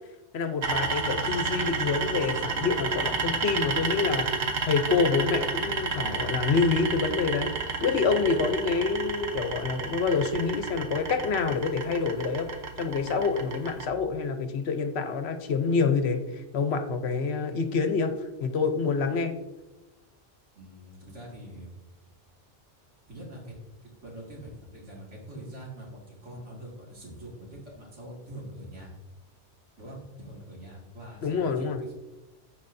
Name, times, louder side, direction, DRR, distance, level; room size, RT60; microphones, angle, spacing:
voice 1, 0.3-4.3 4.6-12.5 12.8-18.1 18.4-19.3 31.2-31.8, left 4 dB, 65° left, 7 dB, 1.0 m, -27 dB
sound 1, 0.6-13.9, right 4 dB, 60° right, 1.1 m, -31 dB
voice 2, 20.5-21.7 23.1-23.6 23.8-28.9 29.8-31.9, right 1 dB, 80° right, -3 dB, 2.5 m, -44 dB
14.0 x 4.7 x 2.6 m, 1.0 s
omnidirectional pair, 1.2 m